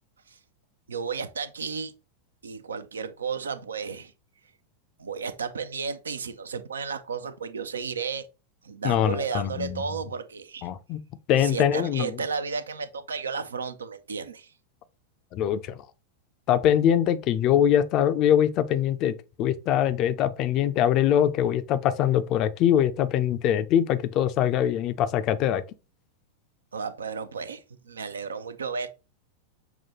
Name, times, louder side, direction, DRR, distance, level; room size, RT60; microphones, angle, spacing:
voice 1, 0.9-1.9 2.4-4.1 5.0-8.3 8.6-10.7 11.4-14.5 26.7-28.9, right 5 dB, 70° right, 0.4 m, -33 dB
voice 2, 8.8-9.8 10.6-11.0 11.3-12.1 15.3-15.8 16.5-25.6, left 10 dB, 40° left, 0.4 m, -23 dB
5.9 x 2.2 x 2.9 m
figure-of-eight pair, 90°, 0 cm